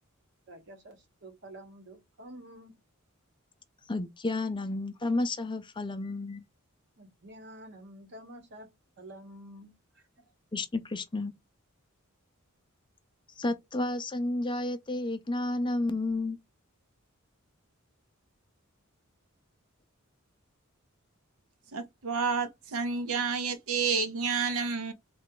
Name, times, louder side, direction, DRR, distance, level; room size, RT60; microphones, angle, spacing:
voice 1, 0.5-2.8 7.0-8.7 9.0-10.3, right 1 dB, 55° right, 1.1 m, -49 dB
voice 2, 3.9-6.4 10.5-11.3 13.4-16.4, left 2 dB, 25° left, 0.5 m, -31 dB
voice 3, 21.7-24.9, right 5 dB, 75° right, 0.6 m, -30 dB
3.3 x 2.3 x 3.7 m
head